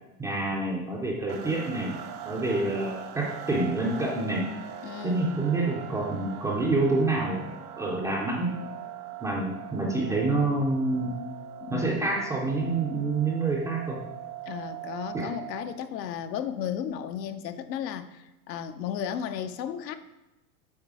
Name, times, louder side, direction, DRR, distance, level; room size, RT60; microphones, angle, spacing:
voice 1, 0.2-2.0 2.2-4.5 5.0-7.4 7.8-8.6 9.2-11.2 11.7-14.0 15.1-15.3, right 2 dB, 5° right, -2 dB, 0.3 m, -27 dB
sound 1, 1.3-15.8, right 10 dB, 70° right, 1.1 m, -41 dB
voice 2, 4.8-5.4 11.6-12.1 14.5-19.9, left 9 dB, 85° left, 10 dB, 0.7 m, -34 dB
8.0 x 3.3 x 4.7 m, 1.0 s
hypercardioid pair, 125°, 48 cm